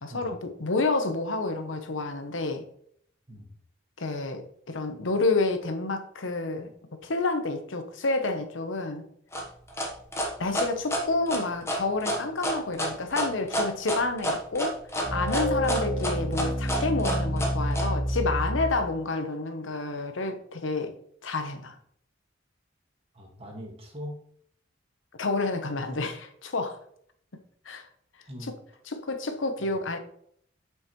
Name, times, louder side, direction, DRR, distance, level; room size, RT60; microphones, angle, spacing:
voice 1, 0.0-2.6 4.0-6.7 7.0-9.0 10.4-14.8 15.1-20.9 21.2-21.7 25.2-26.8 27.6-27.9 29.0-30.0, left 3 dB, 80° left, 7 dB, 0.9 m, -29 dB
sound 1, 9.3-17.9, equal, 15° left, 1.1 m, -29 dB
sound 2, 15.0-19.0, equal, 45° left, 2.0 m, -28 dB
voice 2, 23.1-24.2 28.3-28.5 29.6-29.8, equal, 30° right, 0 dB, 1.7 m, -41 dB
7.2 x 5.6 x 3.1 m, 0.66 s
head